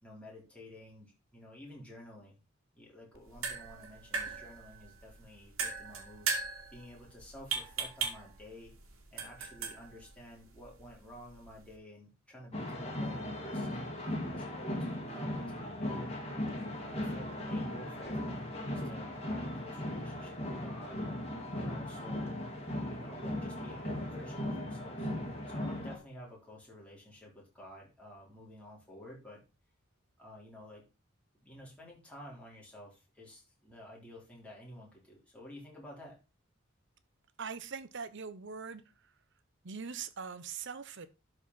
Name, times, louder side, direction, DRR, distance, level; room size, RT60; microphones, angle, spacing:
voice 1, 0.0-2.4 2.7-8.7 9.1-16.1 16.8-21.0 21.5-22.3 22.9-29.4 30.2-30.8 31.4-36.2, left 1 dB, 5° left, 3.9 m, -52 dB
sound 1, 3.1-11.8, right 5 dB, 80° right, 2.2 m, -40 dB
sound 2, 12.5-26.0, left 1 dB, 30° left, 2.5 m, -37 dB
voice 2, 37.4-39.1 39.6-41.1, right 5 dB, 60° right, 0.9 m, -42 dB
12.0 x 5.0 x 4.1 m
head